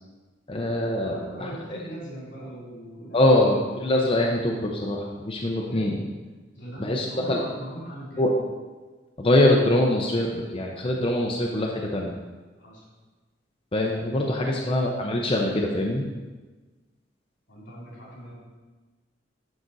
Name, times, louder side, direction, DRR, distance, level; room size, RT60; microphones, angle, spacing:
voice 1, 0.5-1.5 3.1-6.0 6.8-7.4 8.2-8.3 9.2-12.1 13.7-16.0, left 1 dB, 30° left, -1 dB, 0.6 m, -23 dB
voice 2, 1.0-3.6 5.5-6.1 6.5-8.3 12.6-12.8 14.3-14.6 17.5-18.3, right 1 dB, 80° left, -4 dB, 2.6 m, -40 dB
11.0 x 3.8 x 4.0 m, 1.3 s
head